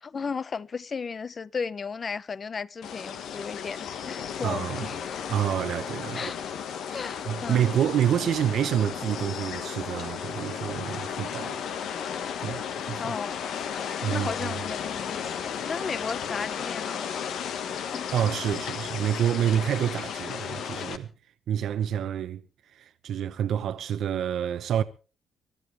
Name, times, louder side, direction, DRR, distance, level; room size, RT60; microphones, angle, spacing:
voice 1, 0.0-5.2 6.1-6.4 6.9-7.7 13.0-18.1, left 5 dB, 40° left, 0.8 m, -35 dB
sound 1, 2.8-21.0, left 8 dB, 75° left, 1.6 m, -34 dB
voice 2, 4.4-4.9 5.3-6.3 6.9-11.6 12.4-13.1 14.0-14.5 18.1-21.1 21.5-22.4 22.7-24.8, right 9 dB, 70° right, 1.0 m, -28 dB
23.0 x 13.0 x 3.4 m
cardioid pair, 90°, 0 cm